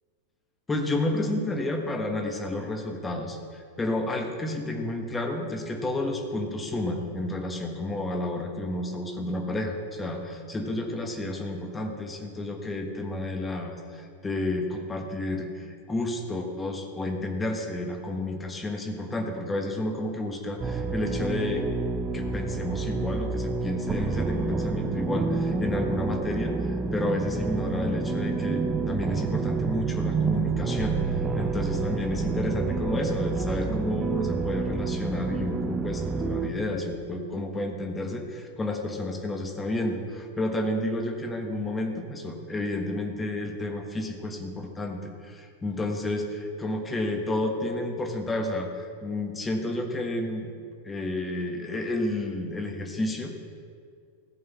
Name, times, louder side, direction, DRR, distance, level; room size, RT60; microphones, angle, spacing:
voice 1, 0.7-21.7 22.1-31.0 31.4-50.5 50.8-53.3, left 1 dB, 15° left, 3 dB, 1.5 m, -31 dB
sound 1, 20.6-36.5, right 4 dB, 20° right, 0.7 m, -28 dB
15.0 x 5.5 x 6.9 m, 2.2 s
figure-of-eight pair, 90°, 0 cm